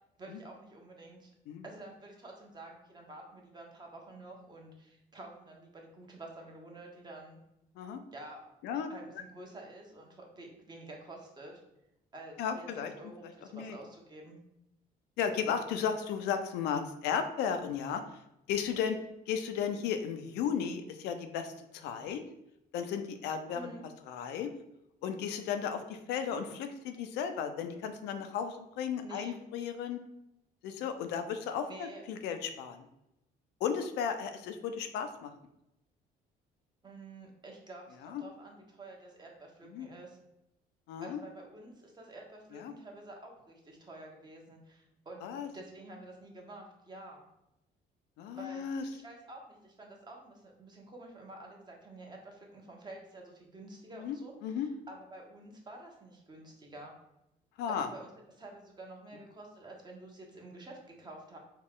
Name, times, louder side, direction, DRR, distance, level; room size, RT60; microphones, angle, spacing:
voice 1, 0.2-1.3 1.6-7.4 8.1-8.4 8.9-11.6 12.1-12.7 13.0-14.4 23.5-23.9 29.0-29.4 31.5-32.0 36.8-40.2 41.0-47.2 48.3-48.6 48.9-56.9 57.7-61.4, right 2 dB, 25° right, 0 dB, 1.0 m, -49 dB
voice 2, 12.4-12.9 13.5-13.8 15.2-18.0 18.5-19.0 19.3-22.2 22.7-23.7 24.0-24.5 25.0-30.0 30.6-32.9 33.6-35.3 38.0-38.2 39.7-39.9 40.9-41.2 42.5-42.7 45.2-45.5 48.2-48.8 53.9-54.2 54.4-54.7 57.6-57.9, left 7 dB, 85° left, 7 dB, 0.5 m, -34 dB
4.3 x 2.4 x 3.6 m, 0.86 s
cardioid pair, 110°, 17 cm